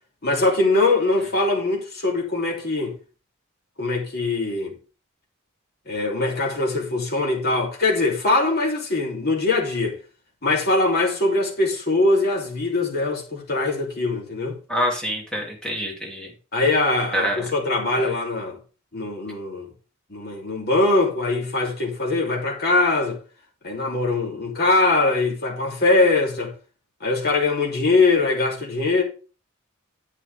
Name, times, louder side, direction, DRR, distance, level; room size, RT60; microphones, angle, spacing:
voice 1, 0.2-2.9 3.8-4.8 5.9-10.0 10.4-14.5 16.5-18.6 18.9-19.7 20.1-23.2 23.6-26.5 27.0-29.0, left 2 dB, 50° left, 3.0 m, -22 dB
voice 2, 14.7-16.3 17.1-17.5 18.0-18.1, equal, 5° left, 2.8 m, -26 dB
11.0 x 8.3 x 3.6 m
head